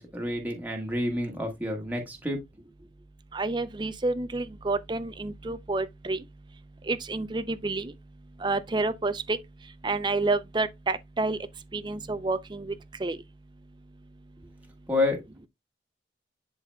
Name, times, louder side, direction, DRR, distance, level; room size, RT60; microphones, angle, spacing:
voice 1, 0.0-2.4 14.9-15.2, left 2 dB, 10° right, 1.5 m, -29 dB
voice 2, 3.3-6.2 6.9-7.9 8.4-9.4 9.8-11.4 11.7-12.7 13.0-13.2, right 3 dB, 25° right, 0.5 m, -29 dB
11.0 x 4.0 x 2.2 m
head